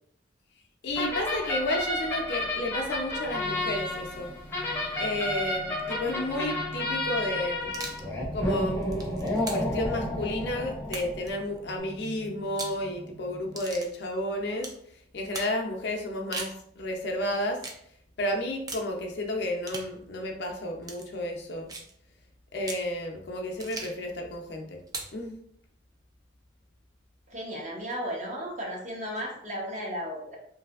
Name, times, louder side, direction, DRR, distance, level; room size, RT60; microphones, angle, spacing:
voice 1, 0.8-4.3 5.0-7.8 8.3-8.8 9.5-14.7 15.1-17.6 18.2-21.7 22.5-24.8 25.1-25.3, left 1 dB, 60° left, 2 dB, 0.5 m, -32 dB
sound 1, 0.9-11.3, left 1 dB, 15° left, 0.7 m, -31 dB
sound 2, 3.2-13.6, right 1 dB, 60° right, 1.2 m, -45 dB
sound 3, 7.6-8.1 8.7-9.8 10.9-11.3 12.4-12.8 13.6-13.9 14.6-14.8 15.3-15.5 16.1-16.6 17.6-17.8 18.7-18.9 19.6-19.9 20.8-21.1 21.7-21.9 22.6-22.9 23.6-24.0 24.9-25.2, right 3 dB, 20° right, 0.4 m, -39 dB
voice 2, 27.3-30.4, equal, 40° right, -2 dB, 0.8 m, -35 dB
3.2 x 2.7 x 2.4 m, 0.68 s
head